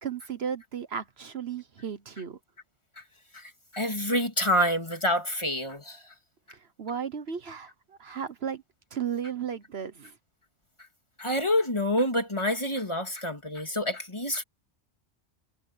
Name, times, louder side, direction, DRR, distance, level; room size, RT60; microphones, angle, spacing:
voice 1, 0.0-2.4 6.5-8.6 8.9-10.1, right 7 dB, 65° right, 1.3 m, -35 dB
voice 2, 3.3-6.1 10.8-10.9 11.2-14.4, equal, 25° left, 3.1 m, -27 dB
omnidirectional pair, 1.2 m